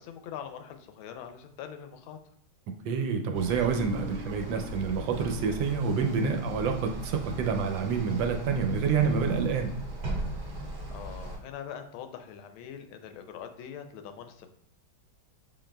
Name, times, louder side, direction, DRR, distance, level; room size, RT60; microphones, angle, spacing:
voice 1, 0.0-2.2 10.9-14.5, left 8 dB, 80° left, 7 dB, 1.4 m, -43 dB
voice 2, 2.8-9.7, right 5 dB, 75° right, 5 dB, 1.2 m, -28 dB
sound 1, 3.3-11.4, right 2 dB, 45° right, 0.5 m, -38 dB
Bass guitar, 3.7-6.2, right 1 dB, 30° right, 0.9 m, -47 dB
6.3 x 3.8 x 2.2 m, 0.68 s
omnidirectional pair, 2.2 m